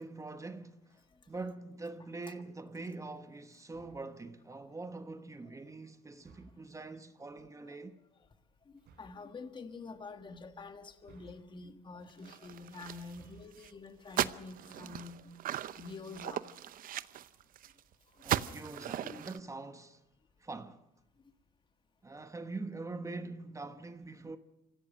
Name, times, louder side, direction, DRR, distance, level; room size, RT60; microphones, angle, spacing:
voice 1, 0.0-8.0 18.2-20.0 20.4-20.8 22.0-24.4, right 3 dB, 20° right, 1.1 m, -44 dB
sound 1, 3.7-4.2 6.2-6.8 8.8-9.3 11.0-11.8 13.0-13.7, right 4 dB, 70° right, 4.1 m, -60 dB
voice 2, 7.3-7.8 8.7-15.2 15.8-16.5 19.0-19.3, left 4 dB, 30° left, 1.7 m, -48 dB
sound 2, 12.2-13.2 13.6-13.7 14.1-17.8 18.2-19.4, right 11 dB, 55° right, 0.7 m, -37 dB
25.5 x 16.0 x 6.3 m
cardioid pair, 110°, 17 cm